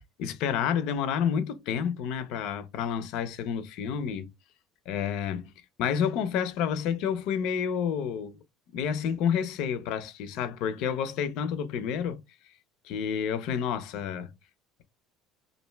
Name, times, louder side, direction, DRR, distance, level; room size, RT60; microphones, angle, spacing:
voice 1, 0.2-4.3 4.9-5.5 5.8-8.4 8.7-12.2 12.8-14.3, left 8 dB, 65° left, 0.4 m, -29 dB
2.5 x 2.2 x 3.1 m
cardioid pair, 125°, 0 cm